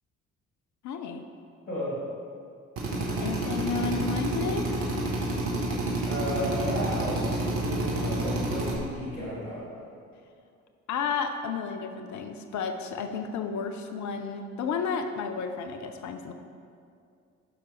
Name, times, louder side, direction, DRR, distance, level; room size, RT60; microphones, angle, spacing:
voice 1, 0.8-1.2 3.2-4.7 10.9-16.3, left 6 dB, 50° left, 7 dB, 0.6 m, -32 dB
voice 2, 1.7-2.0 6.1-9.7, equal, 90° left, -9 dB, 2.0 m, -33 dB
Drill, 2.8-8.8, right 2 dB, 70° right, 1.3 m, -29 dB
11.0 x 5.9 x 3.2 m, 2.4 s
figure-of-eight pair, 45°, 38 cm